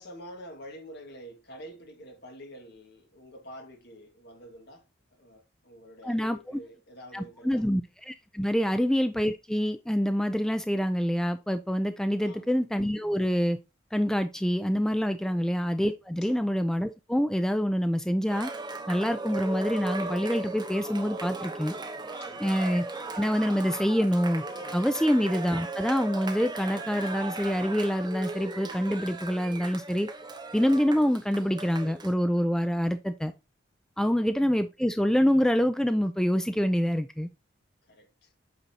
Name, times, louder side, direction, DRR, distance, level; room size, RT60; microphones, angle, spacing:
voice 1, 0.0-4.8 5.1-7.6 8.6-8.8 12.2-12.6 15.3-15.5 16.2-16.5 22.2-22.5 24.9-25.1 34.0-34.3 37.8-38.3, equal, 60° left, 1.8 m, -47 dB
voice 2, 6.0-6.6 7.1-13.6 13.9-18.5 18.9-21.7 22.4-22.8 23.1-24.4 24.7-30.1 30.5-33.3 34.0-37.3, equal, 5° left, 0.3 m, -26 dB
Cheering, 18.3-32.1, right 2 dB, 25° right, 0.9 m, -37 dB
8.1 x 5.4 x 2.8 m
head